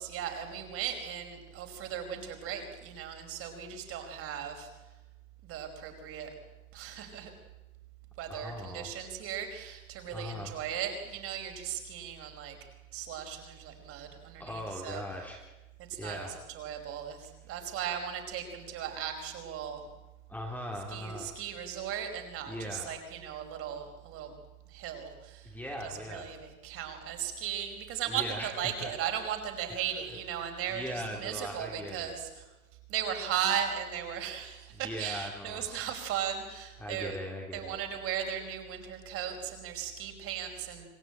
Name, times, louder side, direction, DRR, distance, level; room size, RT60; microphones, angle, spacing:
voice 1, 0.0-4.9 5.4-6.3 6.7-7.3 8.2-12.6 12.9-15.0 15.9-19.9 20.9-24.3 24.7-25.5 25.8-32.5 32.9-37.2 37.5-40.8, right 9 dB, 30° right, 5 dB, 5.1 m, -37 dB
voice 2, 8.3-8.9 10.1-10.5 14.4-15.4 15.9-16.4 20.3-21.3 22.5-22.9 25.4-26.3 28.1-28.9 29.7-29.8 30.7-32.1 34.8-35.7 36.8-37.8, equal, 5° left, 0 dB, 3.5 m, -39 dB
27.5 x 16.5 x 8.9 m, 1.1 s
hypercardioid pair, 130°, 44 cm